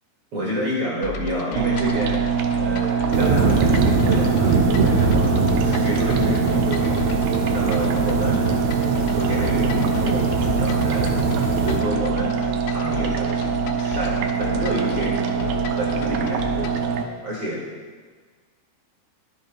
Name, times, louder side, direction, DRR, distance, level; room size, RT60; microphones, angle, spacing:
voice 1, 0.3-7.0 7.2-8.5 9.1-17.0 17.2-17.6, equal, 40° right, -6 dB, 2.2 m, -29 dB
sound 1, 1.0-16.9, left 3 dB, 80° left, 2.6 m, -34 dB
sound 2, 1.6-17.0, right 7 dB, 80° right, 3.1 m, -24 dB
sound 3, 3.1-11.8, right 3 dB, 65° right, 2.9 m, -22 dB
22.0 x 8.0 x 2.3 m, 1.5 s
omnidirectional pair, 5.5 m